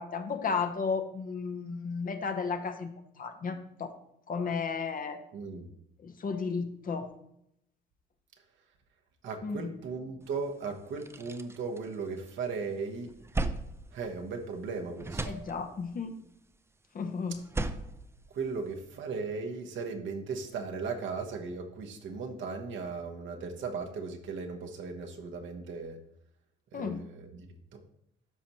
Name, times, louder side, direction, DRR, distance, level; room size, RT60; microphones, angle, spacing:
voice 1, 0.0-2.9 3.2-4.0 4.3-5.2 6.0-7.1 9.4-9.7 15.2-16.1 16.9-17.4 26.7-27.0, left 5 dB, 45° left, 7 dB, 0.8 m, -33 dB
voice 2, 5.3-5.7 9.2-13.1 13.9-15.4 18.3-26.0 26.7-27.5 27.7-27.8, right 4 dB, 75° right, 3 dB, 1.1 m, -37 dB
sound 1, 10.3-10.4 10.8-12.5 12.8-14.7 15.0-16.0 17.3-19.0, right 2 dB, 15° right, 0.4 m, -37 dB
12.5 x 4.1 x 3.0 m, 0.76 s
cardioid pair, 90°, 20 cm